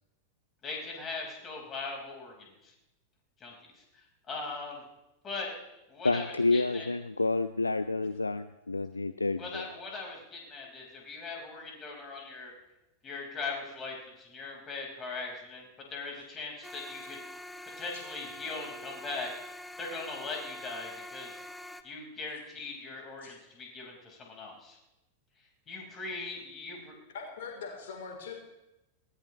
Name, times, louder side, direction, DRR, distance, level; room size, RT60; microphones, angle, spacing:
voice 1, 0.6-2.7 3.4-4.8 5.2-5.5 5.9-6.9 9.4-12.5 13.0-15.6 15.9-17.2 17.7-21.4 21.8-24.8 25.7-26.9, left 3 dB, 25° left, 0 dB, 5.0 m, -40 dB
voice 2, 6.0-9.6, left 3 dB, 80° left, 14 dB, 0.4 m, -29 dB
sound 1, 16.6-21.8, left 1 dB, ahead, 0.9 m, -45 dB
voice 3, 27.1-28.3, left 5 dB, 55° left, 2 dB, 3.6 m, -41 dB
21.0 x 17.0 x 3.2 m, 0.95 s
figure-of-eight pair, 90°, 0 cm